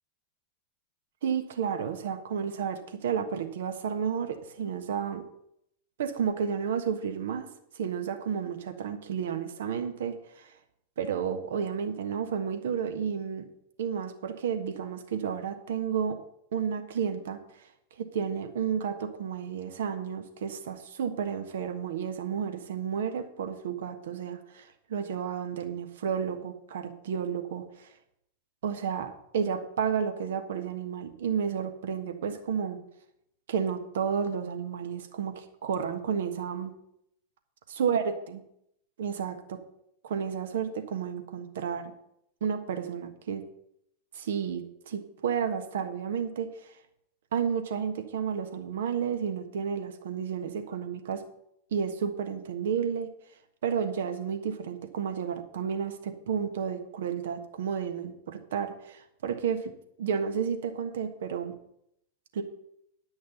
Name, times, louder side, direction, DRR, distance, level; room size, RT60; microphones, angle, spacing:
voice 1, 1.2-5.2 6.0-7.5 7.7-10.5 11.0-13.4 13.8-16.2 16.5-17.4 18.0-27.9 28.6-32.8 33.5-36.7 37.8-38.4 39.0-39.6 40.0-41.9 42.4-43.4 44.1-46.7 47.3-51.2 51.7-53.1 53.6-59.7 60.0-61.5 62.3-62.4, right 7 dB, 70° right, 7 dB, 1.4 m, -31 dB
10.5 x 6.3 x 7.1 m, 0.76 s
figure-of-eight pair, 95°, 0 cm